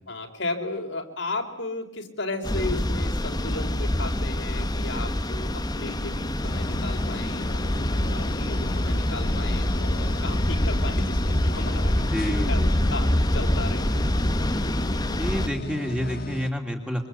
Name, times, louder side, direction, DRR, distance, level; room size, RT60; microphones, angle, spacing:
voice 1, 0.1-12.0 12.3-13.9, left 2 dB, 65° left, 3 dB, 3.6 m, -35 dB
sound 1, 2.4-15.5, left 1 dB, 20° left, 1.0 m, -25 dB
sound 2, 6.4-16.5, left 2 dB, 50° left, 1.4 m, -36 dB
voice 2, 12.0-12.7 15.2-17.1, equal, 5° right, 2 dB, 2.9 m, -29 dB
26.5 x 25.0 x 8.4 m, 0.86 s
head